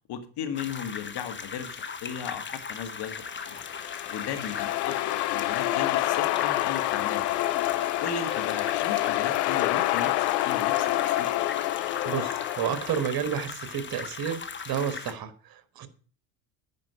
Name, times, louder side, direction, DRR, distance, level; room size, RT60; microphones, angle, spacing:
voice 1, 0.1-3.6 4.1-5.0 5.3-7.4 8.0-11.3, left 8 dB, 55° left, 1.9 m, -36 dB
sound 1, 0.5-15.1, left 5 dB, 25° left, 1.1 m, -38 dB
sound 2, 3.3-13.2, left 17 dB, 80° left, 0.7 m, -27 dB
voice 2, 12.0-15.9, right 8 dB, 45° right, 1.5 m, -31 dB
9.6 x 5.1 x 6.7 m
hypercardioid pair, 75°, 48 cm